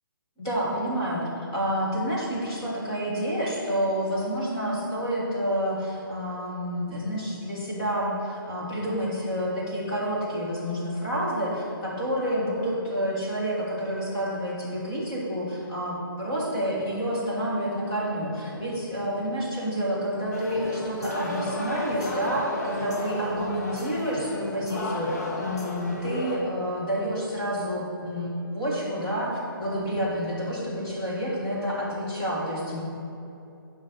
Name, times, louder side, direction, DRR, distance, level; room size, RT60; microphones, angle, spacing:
voice 1, 0.4-1.2 1.5-32.8, equal, 15° left, -7 dB, 1.4 m, -29 dB
sound 1, 20.3-26.4, left 1 dB, 45° left, 0.9 m, -33 dB
10.5 x 5.1 x 3.9 m, 2.7 s
hypercardioid pair, 180°, 12 cm